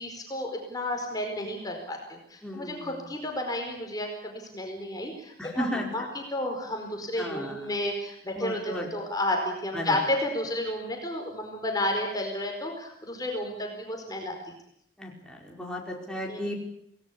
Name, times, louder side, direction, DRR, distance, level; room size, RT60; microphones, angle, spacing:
voice 1, 0.0-14.4 16.3-16.4, left 1 dB, 20° left, 2 dB, 4.7 m, -32 dB
voice 2, 2.4-3.1 5.4-6.1 7.2-7.6 8.4-8.9 9.7-10.0 15.0-16.5, equal, 5° left, -2 dB, 5.1 m, -34 dB
27.5 x 19.0 x 8.6 m, 0.75 s
head